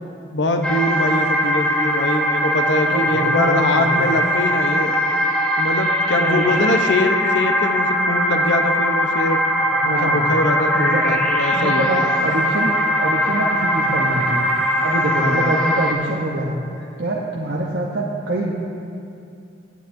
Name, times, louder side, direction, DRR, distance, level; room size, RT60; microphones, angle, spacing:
voice 1, 0.3-4.9 5.6-9.4 9.8-12.0 15.2-15.6, left 2 dB, 85° left, 6 dB, 0.8 m, -23 dB
sound 1, 0.6-15.9, equal, 5° left, 0.8 m, -20 dB
voice 2, 2.8-4.1 6.2-6.8 9.8-10.3 10.7-11.2 11.5-12.7 13.0-14.5 14.8-16.6 17.0-18.5, right 1 dB, 75° right, -3 dB, 0.8 m, -25 dB
16.5 x 8.2 x 2.6 m, 2.5 s
head